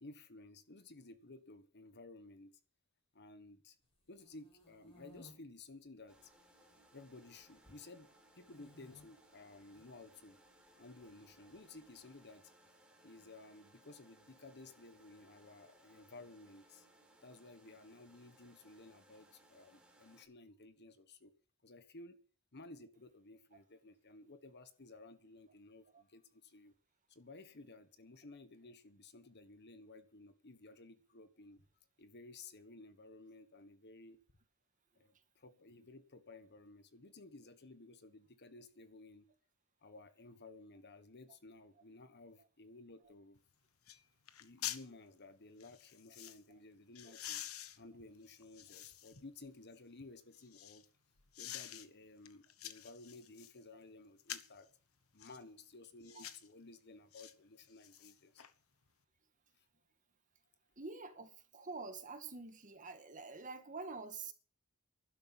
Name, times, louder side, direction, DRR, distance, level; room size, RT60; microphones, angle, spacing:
voice 1, 0.0-2.5 3.1-3.8 4.1-6.3 6.9-8.1 8.4-10.4 10.8-12.4 13.0-16.9 17.2-21.3 21.6-22.2 22.5-26.7 27.1-31.6 32.0-34.2 34.9-39.3 39.8-43.4 44.4-47.4 47.8-50.8 51.4-54.7 55.1-58.4 59.5-59.7, left 2 dB, 50° left, 1.4 m, -56 dB
sound 1, 3.9-5.3 6.0-6.6 6.9-7.8 8.4-9.1 9.6-9.9 11.0-11.9, left 1 dB, 30° left, 6.7 m, -62 dB
sound 2, 6.1-20.2, right 1 dB, 5° right, 4.4 m, -66 dB
sound 3, 43.3-43.4 43.9-44.0 44.3-44.9 45.6-46.4 46.9-49.2 49.7-50.8 51.3-51.9 52.2-53.6 54.2-54.6 55.2-55.4 56.0-56.5 57.1-57.3 57.7-58.5 58.9-59.0, left 11 dB, 80° left, 1.2 m, -47 dB
voice 2, 60.8-64.3, right 4 dB, 40° right, 2.1 m, -47 dB
12.0 x 11.5 x 7.2 m
head